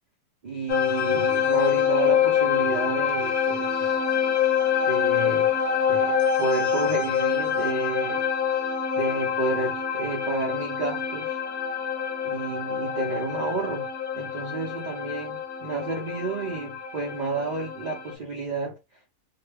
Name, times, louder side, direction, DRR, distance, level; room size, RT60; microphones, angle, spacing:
voice 1, 0.4-4.0 4.9-5.5 5.9-8.3 8.9-11.4 12.2-13.9 14.1-18.8, right 3 dB, 45° right, 0.5 m, -31 dB
sound 1, 0.7-18.1, left 8 dB, 60° left, 1.0 m, -26 dB
2.8 x 2.3 x 3.3 m
omnidirectional pair, 1.6 m